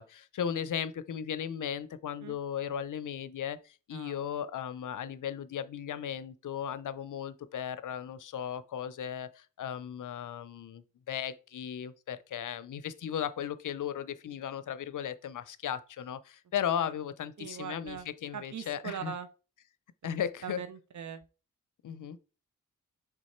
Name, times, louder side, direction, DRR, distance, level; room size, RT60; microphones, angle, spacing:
voice 1, 0.0-19.1 20.0-20.6 21.8-22.2, left 9 dB, 70° left, 0.6 m, -36 dB
voice 2, 3.9-4.2 16.8-16.9 17.4-18.1 18.3-19.3 20.4-21.2, right 7 dB, 60° right, 0.6 m, -41 dB
6.2 x 3.5 x 4.3 m
cardioid pair, 45°, 32 cm